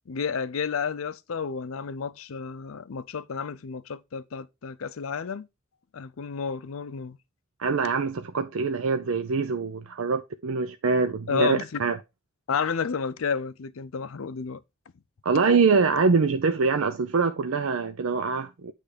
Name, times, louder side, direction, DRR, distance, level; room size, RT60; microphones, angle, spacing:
voice 1, 0.1-5.5 5.9-7.2 11.3-11.8 12.5-14.6, left 6 dB, 85° left, 0.5 m, -31 dB
voice 2, 7.6-12.0 15.2-18.7, right 4 dB, 90° right, 0.6 m, -24 dB
9.1 x 3.3 x 4.9 m
head